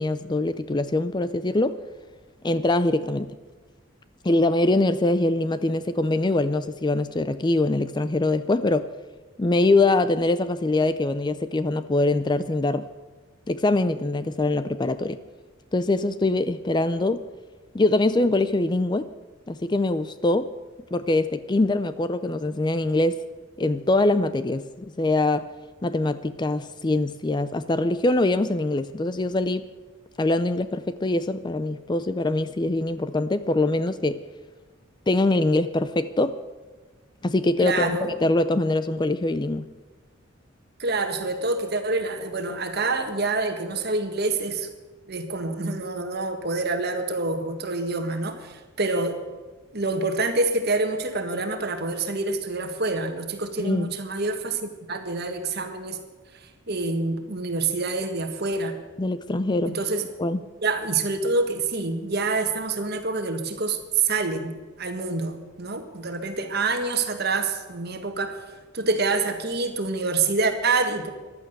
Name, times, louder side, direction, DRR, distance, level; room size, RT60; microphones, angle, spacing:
voice 1, 0.0-1.8 2.4-3.3 4.2-8.9 9.4-12.9 13.5-15.2 15.7-17.2 17.7-19.1 19.5-20.5 20.9-23.2 23.6-25.5 25.8-29.7 30.2-34.2 35.1-36.4 37.2-39.7 53.6-53.9 59.0-59.8 60.2-60.4, left 2 dB, 20° left, 13 dB, 0.4 m, -23 dB
voice 2, 37.6-38.1 40.8-44.7 45.1-49.2 49.7-56.0 56.7-58.8 59.6-60.0 60.6-68.4 68.7-71.1, right 3 dB, 50° right, 6 dB, 1.7 m, -26 dB
15.0 x 11.5 x 6.6 m, 1.3 s
head